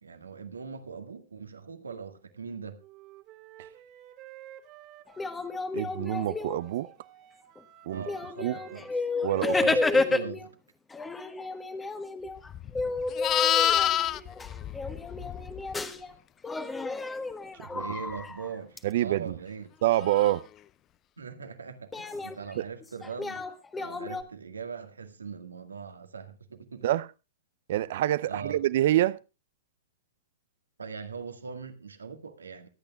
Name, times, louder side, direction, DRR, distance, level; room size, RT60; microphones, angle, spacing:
voice 1, 0.0-2.8 7.9-8.9 9.6-10.6 17.8-19.7 21.2-23.5 23.8-27.0 28.3-28.6 30.8-32.7, right 5 dB, 85° right, 1.9 m, -41 dB
Wind instrument woodwind instrument, 2.8-6.3 6.5-10.1, right 13 dB, 40° right, 2.4 m, -52 dB
sound 1, 5.1-6.9 7.6-7.7 8.1-10.5 10.9-16.1 16.4-18.8 21.9-24.2, left 3 dB, 10° left, 1.3 m, -31 dB
voice 2, 5.7-6.9 7.9-8.0 8.4-8.6 9.2-9.6 17.6-17.8 18.8-19.3 19.8-20.5 22.6-22.7 26.8-27.1 27.7-29.2, right 14 dB, 60° right, 0.5 m, -26 dB
Livestock farm animals working animals, 12.5-15.8 20.1-20.4, left 11 dB, 30° left, 0.6 m, -27 dB
24.0 x 8.9 x 2.4 m
hypercardioid pair, 115°, 0 cm